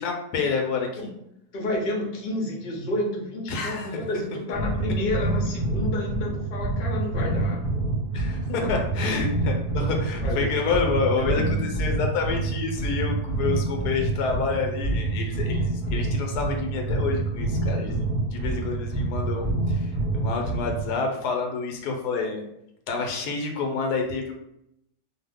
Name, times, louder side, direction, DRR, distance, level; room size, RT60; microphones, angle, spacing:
voice 1, 0.0-0.9 3.5-3.9 8.1-8.4 8.7-11.4 11.8-19.9 20.1-22.5 22.9-24.3, left 4 dB, 80° left, 2 dB, 1.2 m, -28 dB
voice 2, 1.5-7.7 8.5-8.8 10.2-10.5 11.2-11.7, left 1 dB, 45° left, -2 dB, 0.7 m, -30 dB
sound 1, 4.5-20.9, right 2 dB, 40° right, 0.8 m, -27 dB
2.7 x 2.3 x 3.4 m, 0.78 s
omnidirectional pair, 1.7 m